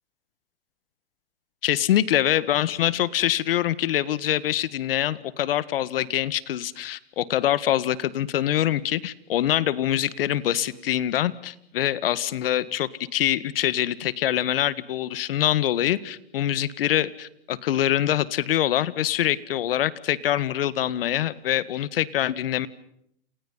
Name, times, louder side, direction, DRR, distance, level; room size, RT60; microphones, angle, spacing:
voice 1, 1.6-22.7, left 12 dB, 70° left, 18 dB, 1.8 m, -24 dB
29.5 x 28.0 x 5.6 m, 0.72 s
hypercardioid pair, 140°, 30 cm